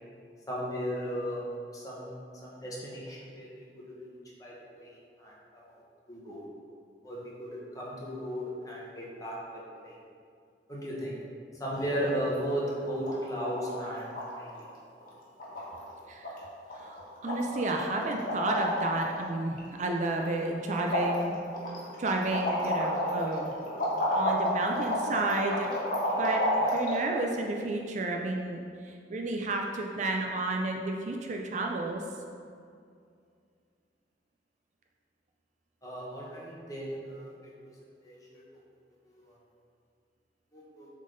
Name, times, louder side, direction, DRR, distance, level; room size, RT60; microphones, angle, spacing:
voice 1, 0.5-1.4 1.7-2.1 2.4-3.6 4.0-4.1 4.4-5.3 6.1-6.4 7.0-7.5 7.7-9.4 9.8-9.9 10.7-11.1 11.6-14.5 35.8-37.3 38.0-38.4 39.2-39.3 40.5-40.9, equal, 20° left, -5 dB, 1.2 m, -35 dB
sound 1, 11.8-12.2 12.5-12.6 12.9-13.2 13.4-14.2 14.5-14.7 15.0-15.1 15.4-15.9 16.2-16.4 16.7-17.0 17.3-19.2 19.6-20.4 20.7-27.0, equal, 50° left, 1.2 m, -31 dB
voice 2, 17.2-21.4 22.0-23.5 24.1-25.7 26.2-32.0, right 2 dB, 45° right, 1 dB, 0.4 m, -31 dB
7.3 x 3.7 x 3.9 m, 2.3 s
head